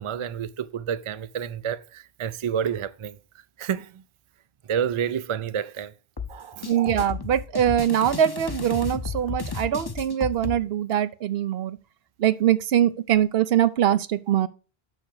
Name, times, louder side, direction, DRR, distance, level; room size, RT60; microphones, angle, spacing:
voice 1, 0.0-3.2 3.6-4.0 4.7-5.9 6.3-6.7, right 8 dB, 45° right, 0.4 m, -29 dB
sound 1, 6.2-10.6, left 5 dB, 25° left, 0.7 m, -33 dB
voice 2, 6.6-11.8 12.2-14.5, right 10 dB, 75° right, 0.8 m, -23 dB
6.4 x 5.8 x 6.5 m
omnidirectional pair, 1.0 m